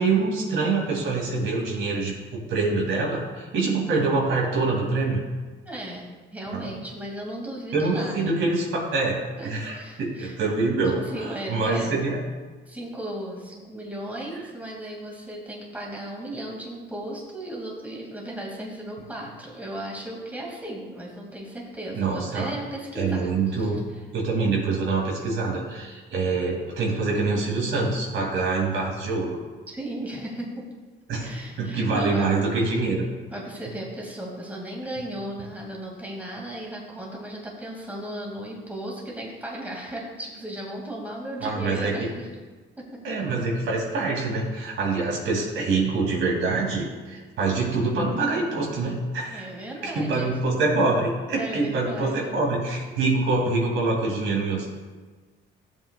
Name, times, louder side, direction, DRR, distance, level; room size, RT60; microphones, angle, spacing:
voice 1, 0.0-5.2 6.5-6.7 7.7-12.2 21.9-22.5 22.9-23.8 24.1-29.3 31.1-31.3 31.6-33.1 41.4-42.0 43.0-49.5 49.8-54.7, right 3 dB, 80° right, -2 dB, 2.9 m, -25 dB
voice 2, 5.6-8.4 9.4-10.4 11.0-11.9 12.7-23.3 23.6-23.7 29.7-30.6 31.2-32.3 33.3-42.3 42.8-42.9 49.3-50.5 51.4-52.4, right 1 dB, 10° right, -3 dB, 2.5 m, -35 dB
14.0 x 7.7 x 2.5 m, 1.4 s
cardioid pair, 90°, 20 cm